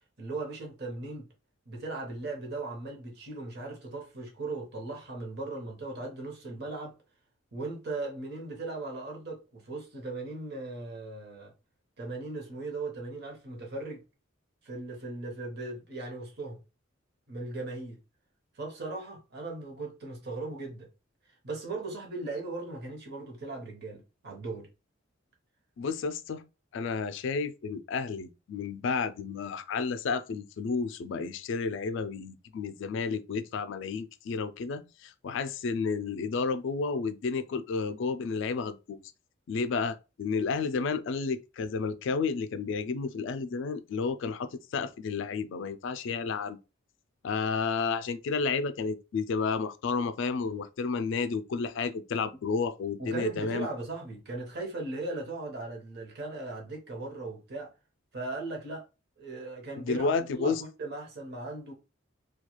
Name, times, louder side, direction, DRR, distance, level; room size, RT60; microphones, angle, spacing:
voice 1, 0.2-1.3 1.7-6.9 7.5-11.5 12.0-14.0 14.6-16.6 17.3-18.0 18.5-20.9 21.4-24.7 53.0-57.7 58.1-58.8 59.2-61.7, right 2 dB, 55° right, 0.9 m, -38 dB
voice 2, 25.8-26.4 26.7-39.0 39.5-46.6 47.2-53.7 59.8-60.6, left 4 dB, 65° left, 0.3 m, -31 dB
2.3 x 2.3 x 2.9 m
head